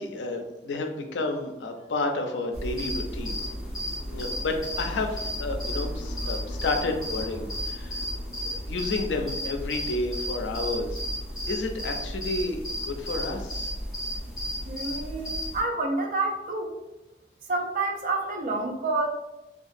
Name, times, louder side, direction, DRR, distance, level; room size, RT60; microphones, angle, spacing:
voice 1, 0.0-3.4 4.1-8.0 8.5-11.0 11.5-13.7, left 2 dB, 80° left, 4 dB, 0.4 m, -31 dB
sound 1, 2.5-15.6, equal, ahead, 0.8 m, -33 dB
voice 2, 14.7-16.8 17.5-19.1, right 2 dB, 50° right, 2 dB, 0.4 m, -28 dB
2.7 x 2.3 x 2.5 m, 0.98 s
head